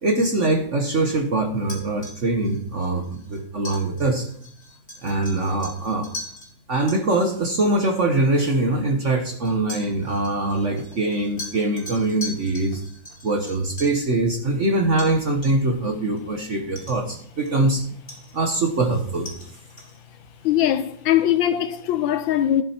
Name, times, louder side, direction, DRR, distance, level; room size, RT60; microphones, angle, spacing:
voice 1, 0.0-4.3 5.0-6.1 6.7-12.8 13.2-17.8 18.3-19.3, right 2 dB, 45° right, 1.1 m, -23 dB
sound 1, 1.6-6.5 6.9-7.0 8.0-8.1 9.4-14.0 15.0-15.2 15.4-15.8 16.2-16.3 16.8-17.7 18.1-20.0, left 1 dB, 20° left, 3.9 m, -40 dB
voice 2, 20.4-22.6, left 11 dB, 70° left, 1.3 m, -21 dB
12.0 x 7.5 x 4.4 m
omnidirectional pair, 2.3 m